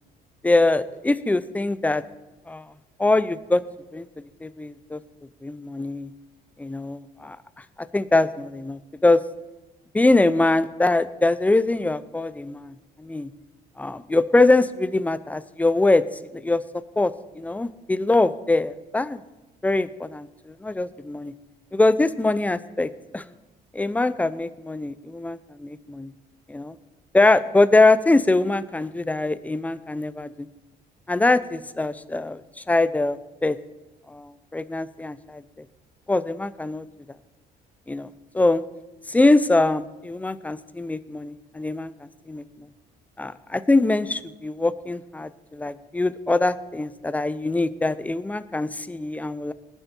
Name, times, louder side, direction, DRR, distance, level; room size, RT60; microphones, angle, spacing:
voice 1, 0.4-2.0 2.5-2.7 3.0-3.6 3.9-4.1 4.4-5.0 5.4-6.1 6.6-7.4 7.9-9.2 9.9-13.3 13.8-16.0 16.3-16.6 17.0-19.2 19.6-21.3 21.7-23.2 23.7-26.1 26.5-26.8 27.1-30.5 31.1-32.4 32.7-33.6 34.1-35.4 36.1-36.9 37.9-38.1 38.3-38.6 39.1-42.7 43.2-49.5, left 2 dB, 10° left, 14 dB, 0.6 m, -23 dB
20.0 x 9.2 x 4.5 m, 1.1 s
cardioid pair, 110°, 17 cm